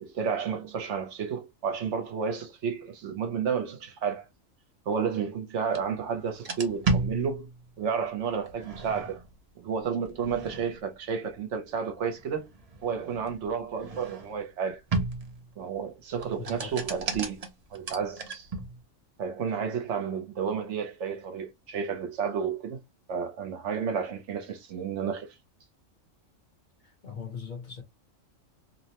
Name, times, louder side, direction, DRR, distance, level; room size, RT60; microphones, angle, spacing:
voice 1, 0.0-4.3 4.9-7.5 7.8-9.2 9.6-12.5 12.8-14.8 15.6-17.4 17.7-18.5 19.2-22.8 23.1-25.3, right 6 dB, 65° right, 0.9 m, -31 dB
sound 1, 5.7-5.8 6.3-7.8 8.5-9.3 10.0-10.9 12.1-14.5 14.9-15.5 16.1-18.8, right 3 dB, 45° right, 0.5 m, -34 dB
voice 2, 16.4-16.8 26.8-27.8, left 6 dB, 45° left, 0.8 m, -40 dB
2.9 x 2.1 x 2.8 m
omnidirectional pair, 1.3 m